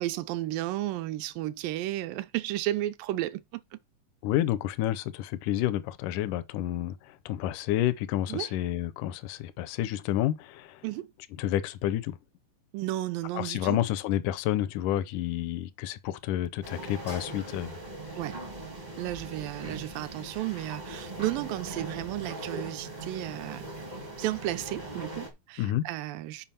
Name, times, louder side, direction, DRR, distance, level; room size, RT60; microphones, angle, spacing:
voice 1, 0.0-3.8 8.3-8.5 10.8-11.1 12.7-13.8 18.2-18.4 19.0-23.9 24.1-26.5, right 15 dB, 80° right, 2.2 m, -33 dB
voice 2, 4.2-10.8 11.4-12.2 13.3-17.8 25.6-25.9, left 13 dB, 80° left, 1.9 m, -30 dB
sound 1, 16.6-25.3, right 2 dB, 45° right, 0.5 m, -40 dB
7.3 x 4.8 x 5.5 m
omnidirectional pair, 4.1 m